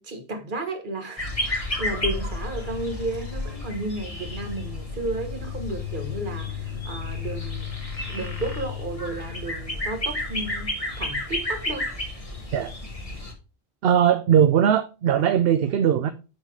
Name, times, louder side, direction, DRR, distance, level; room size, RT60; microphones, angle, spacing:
voice 1, 0.0-7.7 8.1-11.9, right 2 dB, 50° right, 1.5 m, -33 dB
sound 1, 1.2-13.3, left 2 dB, 35° left, 1.9 m, -31 dB
voice 2, 13.8-16.1, right 9 dB, 70° right, 0.8 m, -19 dB
10.0 x 4.1 x 4.5 m
omnidirectional pair, 1.1 m